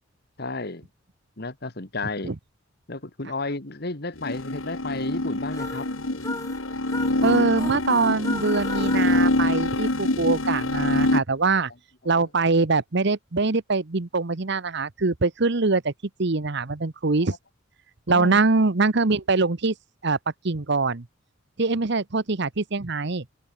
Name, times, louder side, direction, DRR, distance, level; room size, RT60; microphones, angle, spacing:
voice 1, 0.4-0.9 1.4-2.4 2.9-5.9 12.1-12.3 17.2-17.4 18.1-18.4, left 3 dB, 55° left, 2.0 m, -32 dB
sound 1, 4.2-11.2, left 1 dB, 85° left, 2.5 m, -25 dB
sound 2, 5.5-10.3, left 2 dB, 15° left, 1.9 m, -37 dB
voice 2, 7.2-11.7 12.0-15.9 16.2-17.3 18.1-19.7 20.0-20.2 20.4-21.0 21.6-23.2, right 3 dB, 60° right, 1.1 m, -23 dB
head